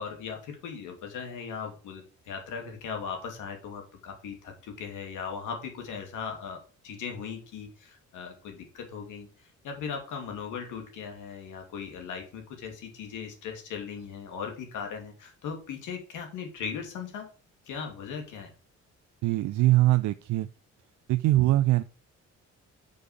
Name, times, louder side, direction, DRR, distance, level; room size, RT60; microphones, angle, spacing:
voice 1, 0.0-17.3 17.7-18.5, left 6 dB, 85° left, 3 dB, 2.6 m, -38 dB
voice 2, 19.2-20.5 21.1-21.8, right 16 dB, 75° right, 12 dB, 0.5 m, -22 dB
6.7 x 5.1 x 6.8 m, 0.37 s
cardioid pair, 90°, 30 cm